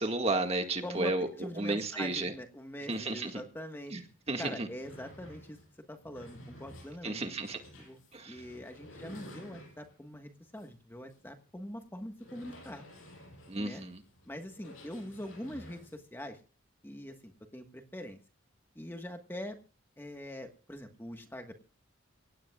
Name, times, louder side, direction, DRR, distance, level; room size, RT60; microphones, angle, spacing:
voice 1, 0.0-1.3 1.6-2.3 2.9-3.4 3.9-4.0 4.3-4.7 7.0-7.6 8.1-8.4 13.5-14.0, right 2 dB, 30° right, 5 dB, 1.8 m, -32 dB
voice 2, 0.8-3.9 4.4-5.6 5.9-7.2 7.8-8.0 8.2-12.9 13.6-13.8 14.3-16.4 16.8-18.2 18.7-19.6 20.0-21.5, left 1 dB, 10° left, 5 dB, 1.4 m, -43 dB
sound 1, 4.0-4.1 4.4-10.1 10.6-10.7 11.1-11.2 12.1-16.0, left 1 dB, 90° left, 7.2 m, -52 dB
23.5 x 17.5 x 2.4 m, 0.35 s
head